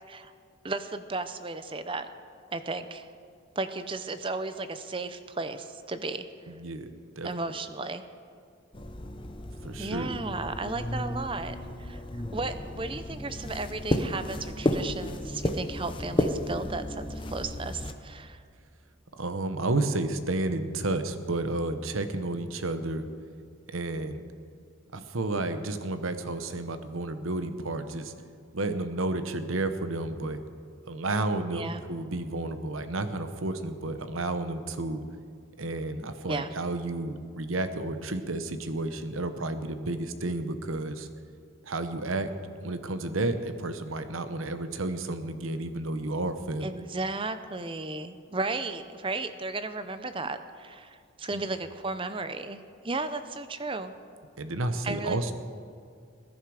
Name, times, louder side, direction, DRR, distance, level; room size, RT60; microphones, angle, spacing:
voice 1, 0.6-2.1 2.5-3.1 3.6-6.2 7.2-8.0 9.8-12.0 12.3-18.4 31.5-31.8 36.0-36.5 46.6-52.6 52.8-53.9 54.8-55.3, right 3 dB, 25° right, 11 dB, 0.6 m, -34 dB
voice 2, 6.5-7.3 9.6-10.1 19.2-23.1 23.7-24.2 24.9-28.1 28.5-30.4 30.9-35.0 35.6-41.1 41.6-42.3 42.6-46.7 51.3-51.4 54.4-55.3, right 2 dB, 75° right, 9 dB, 1.0 m, -31 dB
sound 1, 8.7-17.9, left 1 dB, 25° left, 0.7 m, -33 dB
20.5 x 11.0 x 4.9 m, 2.3 s
head